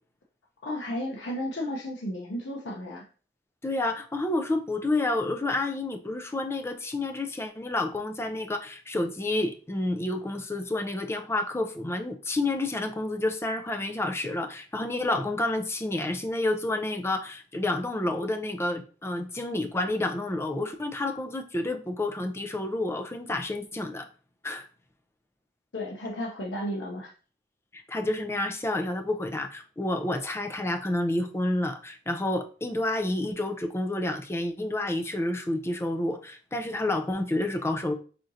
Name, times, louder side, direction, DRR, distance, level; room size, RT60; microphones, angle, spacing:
voice 1, 0.6-3.1 25.7-27.1, left 1 dB, 80° left, -2 dB, 0.7 m, -33 dB
voice 2, 3.6-24.1 24.4-24.7 27.7-37.9, left 2 dB, 15° left, 5 dB, 0.4 m, -29 dB
4.3 x 3.7 x 2.6 m, 0.38 s
head